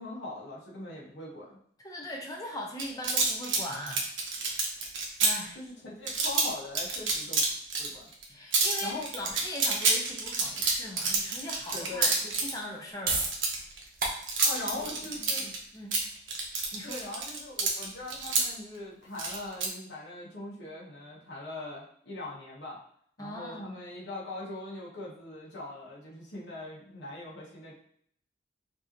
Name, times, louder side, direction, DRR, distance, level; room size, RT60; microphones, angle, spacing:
voice 1, 0.0-1.6 5.5-7.4 7.8-8.1 8.8-9.1 11.7-12.1 14.4-15.5 16.8-22.8 23.2-27.7, left 2 dB, 70° left, -5 dB, 1.2 m, -41 dB
voice 2, 1.8-4.0 5.2-5.6 8.3-13.4 14.6-14.9 15.2-16.0 16.7-17.0 23.2-23.8, left 1 dB, 20° left, -1 dB, 0.6 m, -40 dB
sound 1, 2.8-5.3 6.1-6.5 6.8-8.2 8.5-12.5 13.2-15.6 15.9-18.4 19.2-19.7, right 4 dB, 80° right, 1.0 m, -28 dB
sound 2, 12.7-19.3, right 3 dB, 50° right, 0.8 m, -37 dB
5.2 x 2.8 x 2.9 m, 0.65 s
head